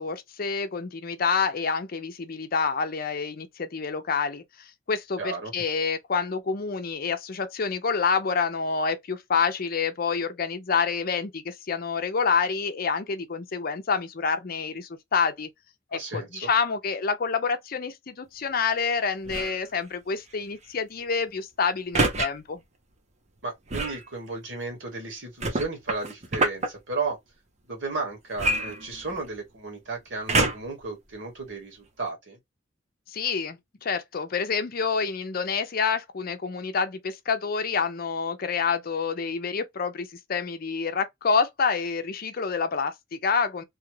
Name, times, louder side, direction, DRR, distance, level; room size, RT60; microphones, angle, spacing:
voice 1, 0.0-15.5 15.9-22.6 33.1-43.6, left 5 dB, 50° left, 0.6 m, -28 dB
voice 2, 5.2-5.5 15.9-16.5 23.4-27.2 27.7-32.4, right 3 dB, 70° right, 1.6 m, -34 dB
sound 1, 19.2-19.6 21.9-22.3 23.7-24.0 25.4-26.7 28.4-29.3 30.3-30.8 31.5-31.6, right 2 dB, 40° right, 0.7 m, -26 dB
3.0 x 2.3 x 3.1 m
head